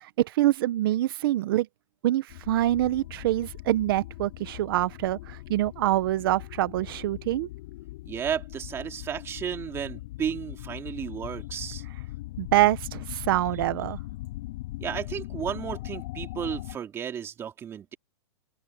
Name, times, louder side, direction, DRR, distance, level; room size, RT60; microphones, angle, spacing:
voice 1, 0.0-1.7 2.0-7.5 12.4-14.0, right 15 dB, 50° right, 1.1 m, -25 dB
sound 1, 2.3-16.8, left 17 dB, 50° left, 5.4 m, -40 dB
voice 2, 8.1-11.8 14.8-18.0, right 8 dB, 15° right, 2.8 m, -33 dB
open air
hypercardioid pair, 160°, 15 cm